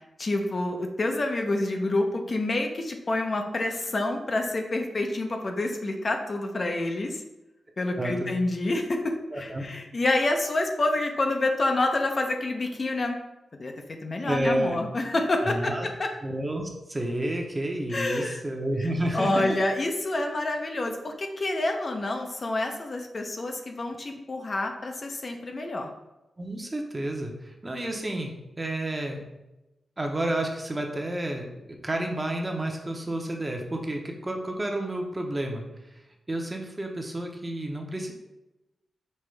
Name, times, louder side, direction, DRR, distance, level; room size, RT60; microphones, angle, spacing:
voice 1, 0.2-7.2 7.8-13.2 13.6-13.7 14.0-16.1 17.9-18.4 19.1-25.9, left 2 dB, 45° left, 3 dB, 0.6 m, -28 dB
voice 2, 8.0-8.3 9.3-9.6 14.2-14.8 15.4-15.9 16.2-19.4 26.4-29.2 30.0-35.7 36.3-38.1, right 1 dB, 25° right, 2 dB, 0.8 m, -30 dB
5.4 x 2.9 x 3.3 m, 0.96 s
cardioid pair, 75°, 0 cm